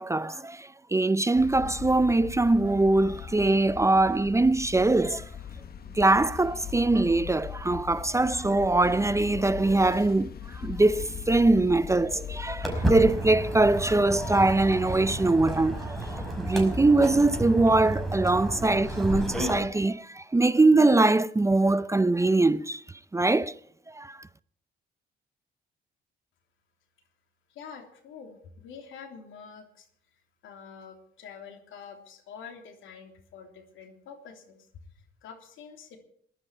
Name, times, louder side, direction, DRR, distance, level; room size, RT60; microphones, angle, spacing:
voice 1, 0.0-5.3 5.9-16.1 16.4-22.8 23.1-23.5 23.9-24.2, right 2 dB, 15° right, 0.6 m, -23 dB
sound 1, 1.3-13.2, left 8 dB, 50° left, 1.4 m, -40 dB
Walk footsteps, 12.6-19.6, right 1 dB, ahead, 5.4 m, -31 dB
voice 2, 27.5-29.9 30.4-34.7 34.9-36.0, left 6 dB, 85° left, 3.2 m, -46 dB
20.0 x 12.0 x 4.5 m
cardioid pair, 90°, 20 cm